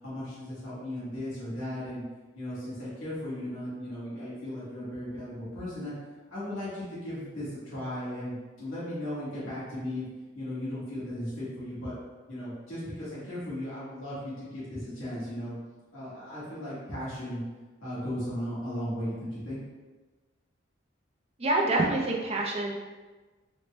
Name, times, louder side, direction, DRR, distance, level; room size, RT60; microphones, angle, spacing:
voice 1, 0.0-2.0 2.3-5.9 6.3-10.1 10.3-11.9 12.3-15.6 15.9-17.4 17.8-19.6, left 1 dB, 90° left, -10 dB, 1.4 m, -36 dB
voice 2, 21.4-22.7, right 2 dB, 30° right, -2 dB, 0.5 m, -26 dB
4.1 x 2.1 x 3.3 m, 1.3 s
head